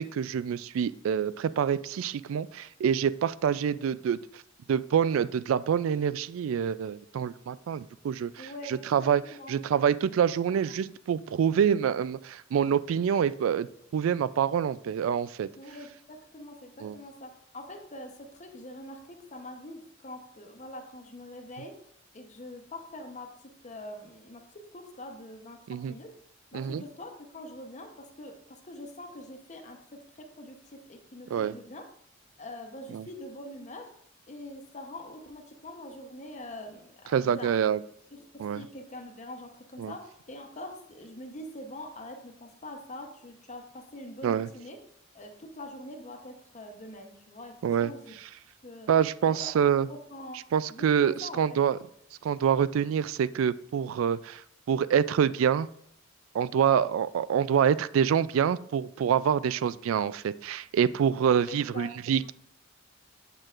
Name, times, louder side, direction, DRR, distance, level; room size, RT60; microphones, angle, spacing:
voice 1, 0.0-4.4 4.7-9.2 9.5-13.7 13.9-15.5 16.8-17.0 25.7-25.9 26.5-26.8 31.3-31.5 32.9-33.1 37.1-37.8 38.4-38.6 39.8-39.9 44.2-44.5 47.6-47.9 48.9-49.9 50.5-51.8 52.2-54.4 54.7-55.7 56.3-62.3, right 8 dB, 85° right, 18 dB, 0.3 m, -26 dB
voice 2, 8.4-9.6 10.5-10.6 15.6-21.7 22.1-26.1 26.5-31.9 32.4-33.9 34.3-37.5 38.1-44.8 45.1-48.1 48.6-48.9 49.2-49.5 49.9-50.4 50.7-51.6 61.5-62.3, left 1 dB, 35° left, 4 dB, 0.9 m, -44 dB
7.8 x 6.6 x 2.5 m, 0.68 s
head